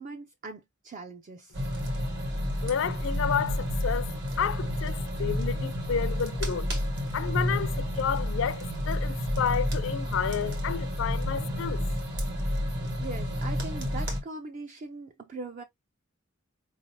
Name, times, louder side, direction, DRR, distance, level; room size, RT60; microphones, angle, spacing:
voice 1, 0.0-1.7 13.0-15.6, right 3 dB, 40° right, 0.4 m, -41 dB
sound 1, 1.5-14.2, equal, 60° right, 1.7 m, -30 dB
voice 2, 2.6-4.1 4.4-11.9, left 7 dB, 65° left, 0.4 m, -31 dB
4.3 x 3.2 x 2.6 m
head